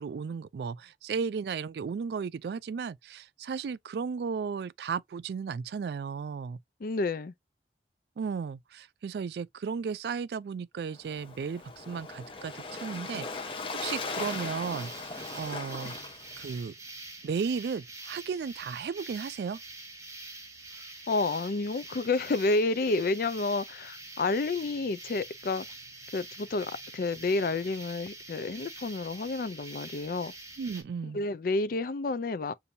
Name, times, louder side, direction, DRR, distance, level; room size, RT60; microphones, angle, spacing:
voice 1, 0.0-6.6 8.2-15.9 16.4-16.7 17.2-19.6 30.6-31.2, right 6 dB, 65° right, 0.3 m, -35 dB
voice 2, 6.8-7.3 21.1-25.6 26.1-30.3 31.0-32.5, left 3 dB, 50° left, 0.4 m, -30 dB
Waves surf, 10.9-16.6, left 3 dB, 30° left, 0.9 m, -39 dB
sound 1, 13.8-30.8, right 2 dB, 15° right, 1.4 m, -46 dB
6.8 x 2.7 x 2.6 m
head